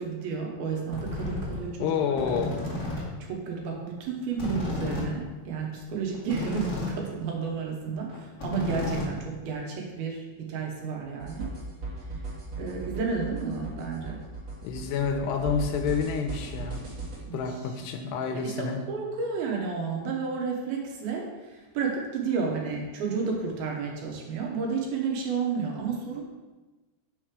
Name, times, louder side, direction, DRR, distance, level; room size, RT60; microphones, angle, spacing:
voice 1, 0.0-2.2 3.2-11.5 12.0-12.2 12.6-14.2 17.2-17.4 18.3-26.2, right 5 dB, 75° right, 0 dB, 2.6 m, -32 dB
sound 1, 0.9-1.6 2.0-3.0 3.3-3.4 3.6-3.7 4.0-4.1 4.3-7.0 7.3-7.5 7.8-9.5, left 2 dB, 30° left, 2.0 m, -33 dB
voice 2, 1.8-2.6 14.6-16.8 17.3-18.8, left 6 dB, 80° left, 5 dB, 2.8 m, -29 dB
sound 2, 11.2-17.2, right 3 dB, 35° right, 1.9 m, -37 dB
6.5 x 6.2 x 4.8 m, 1.2 s
omnidirectional pair, 4.8 m